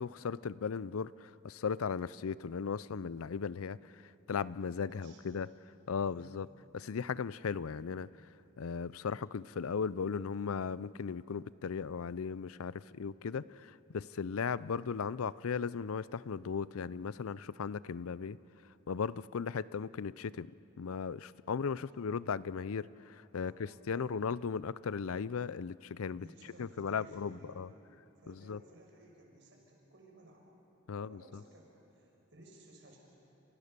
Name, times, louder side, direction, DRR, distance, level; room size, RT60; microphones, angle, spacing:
voice 1, 0.0-5.5 5.9-6.5 6.7-8.1 8.6-18.4 18.9-20.5 20.8-26.3 26.6-27.7 28.3-28.6 30.9-31.4, left 6 dB, 85° left, 19 dB, 0.5 m, -37 dB
voice 2, 4.9-5.3 5.9-6.3 21.7-21.9 23.4-23.6 23.9-24.0 26.2-27.7 28.2-30.4 30.9-33.0, right 1 dB, 55° right, 0 dB, 6.0 m, -58 dB
29.5 x 28.0 x 6.8 m, 3.0 s
head